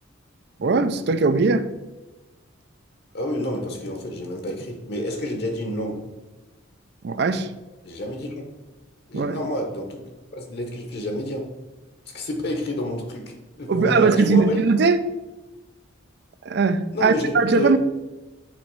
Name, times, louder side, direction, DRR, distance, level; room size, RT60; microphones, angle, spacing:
voice 1, 0.6-1.7 7.0-7.5 9.1-9.4 13.7-15.0 16.4-17.8, right 4 dB, 50° right, 12 dB, 0.4 m, -20 dB
voice 2, 3.1-6.0 7.8-8.5 9.1-10.1 10.3-11.5 12.1-14.6 16.9-17.7, left 1 dB, 50° left, 3 dB, 0.8 m, -29 dB
7.5 x 3.1 x 4.6 m, 1.1 s
head